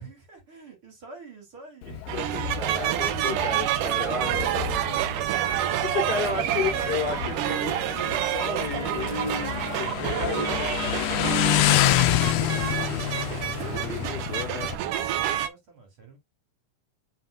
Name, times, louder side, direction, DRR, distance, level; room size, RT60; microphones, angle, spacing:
voice 1, 0.0-2.2 5.1-7.7 9.1-12.9 13.4-16.2, right 3 dB, 45° right, 3.6 m, -46 dB
Motorcycle, 1.8-14.7, left 14 dB, 80° left, 1.5 m, -28 dB
voice 2, 2.1-5.1 5.8-10.7 10.9-11.1 13.6-14.7, left 4 dB, 40° left, 1.8 m, -33 dB
sound 1, 2.1-15.5, right 11 dB, 90° right, 2.4 m, -28 dB
8.0 x 5.8 x 2.4 m
omnidirectional pair, 3.6 m